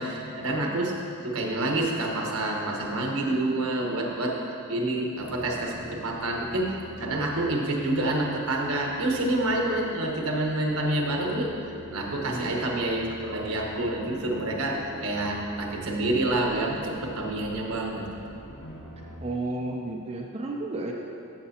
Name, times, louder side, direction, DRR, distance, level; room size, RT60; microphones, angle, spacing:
voice 1, 0.0-4.3 4.7-5.7 6.0-18.0, right 1 dB, 75° right, 0 dB, 1.2 m, -28 dB
sound 1, 5.2-19.2, right 1 dB, 80° left, 1.2 m, -46 dB
voice 2, 12.2-12.6 19.2-20.9, right 2 dB, 25° right, -1 dB, 0.5 m, -32 dB
13.5 x 6.9 x 2.8 m, 2.8 s
head